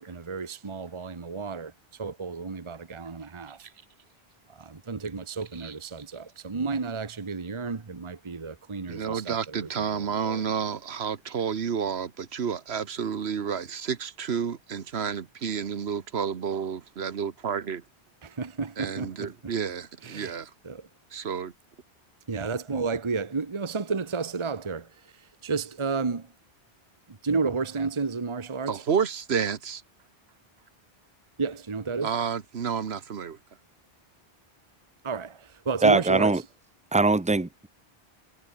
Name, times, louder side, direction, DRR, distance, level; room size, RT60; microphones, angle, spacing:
voice 1, 0.0-3.6 4.5-10.4 18.2-19.3 20.0-20.9 22.3-26.3 27.1-28.8 31.4-32.1 35.0-36.4, right 4 dB, 30° right, 1.1 m, -32 dB
voice 2, 8.9-17.8 18.8-20.5 21.1-21.5 28.7-29.8 32.0-33.4, right 7 dB, 80° right, 1.5 m, -30 dB
voice 3, 35.8-36.4 36.9-37.7, right 3 dB, 5° right, 0.8 m, -21 dB
omnidirectional pair, 1.1 m